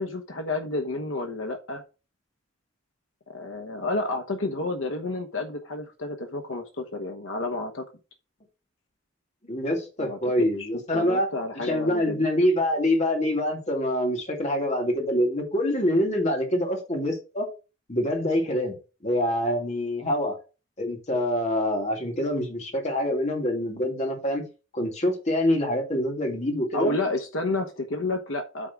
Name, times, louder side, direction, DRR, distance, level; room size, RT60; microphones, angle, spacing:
voice 1, 0.0-1.8 3.3-7.8 10.0-12.2 26.7-28.7, left 2 dB, 80° left, 4 dB, 1.1 m, -30 dB
voice 2, 9.5-11.3 11.6-17.5 17.9-18.8 19.0-20.4 20.8-24.4 24.7-27.0, left 1 dB, 35° left, 2 dB, 2.4 m, -25 dB
8.8 x 3.7 x 5.9 m, 0.32 s
head